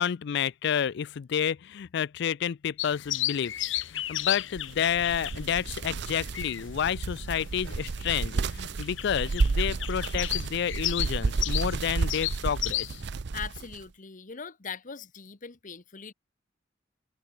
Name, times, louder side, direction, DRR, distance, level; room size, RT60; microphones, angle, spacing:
voice 1, 0.0-13.0, left 8 dB, 65° left, 0.4 m, -30 dB
sound 1, 2.8-13.1, left 15 dB, 80° left, 1.0 m, -34 dB
sound 2, 4.6-13.8, right 4 dB, 65° right, 0.6 m, -31 dB
voice 2, 13.3-16.1, left 6 dB, 45° left, 1.0 m, -41 dB
head